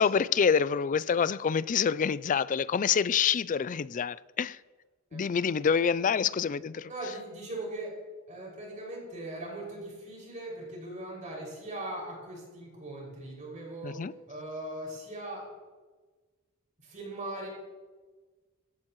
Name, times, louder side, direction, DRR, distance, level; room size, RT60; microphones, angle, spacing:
voice 1, 0.0-4.6 5.1-6.9 13.8-14.1, left 6 dB, 35° left, 0.3 m, -26 dB
voice 2, 6.9-7.9 8.3-14.0 14.3-15.5 16.8-17.5, right 1 dB, 35° right, 6.0 m, -40 dB
20.0 x 16.5 x 3.1 m
head